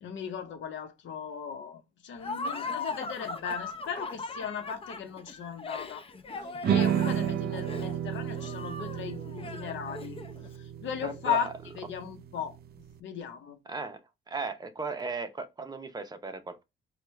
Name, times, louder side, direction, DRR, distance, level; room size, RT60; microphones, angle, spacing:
voice 1, 0.0-6.0 6.6-10.2 10.8-11.5 11.7-12.6 13.0-13.6, left 7 dB, 70° left, 0.9 m, -36 dB
Laughter, 2.2-10.5, left 3 dB, 30° left, 0.6 m, -39 dB
sound 1, 6.6-12.9, right 10 dB, 55° right, 0.4 m, -32 dB
voice 2, 11.0-11.5 13.7-14.0 14.3-16.6, right 4 dB, 20° right, 0.8 m, -36 dB
4.5 x 2.4 x 3.1 m
cardioid pair, 90°, 20 cm